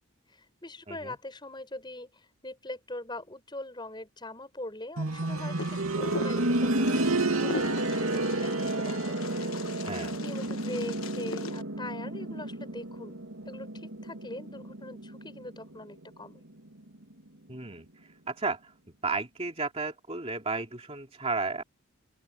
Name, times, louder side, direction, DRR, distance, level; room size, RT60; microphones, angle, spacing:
voice 1, 0.3-9.2 10.2-16.4, left 1 dB, 20° left, 7.2 m, -42 dB
sound 1, 5.0-15.7 17.1-17.2, right 2 dB, 80° right, 2.7 m, -31 dB
Wind, 5.6-11.6, left 5 dB, 75° left, 1.2 m, -41 dB
voice 2, 9.8-10.2 17.5-17.9 18.3-18.7 19.0-21.6, right 3 dB, 30° right, 2.6 m, -33 dB
open air
head